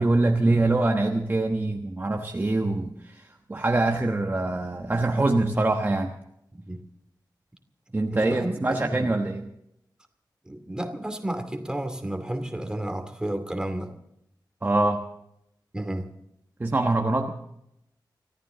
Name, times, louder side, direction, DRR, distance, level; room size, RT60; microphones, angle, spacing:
voice 1, 0.0-6.1 7.9-9.5 14.6-15.1 16.6-17.3, right 2 dB, 25° right, 3 dB, 1.1 m, -24 dB
voice 2, 6.5-6.8 8.1-9.1 10.5-13.9 15.7-16.1, right 1 dB, 10° right, 5 dB, 2.4 m, -32 dB
24.5 x 14.5 x 3.8 m, 0.79 s
wide cardioid pair, 115°, 8 cm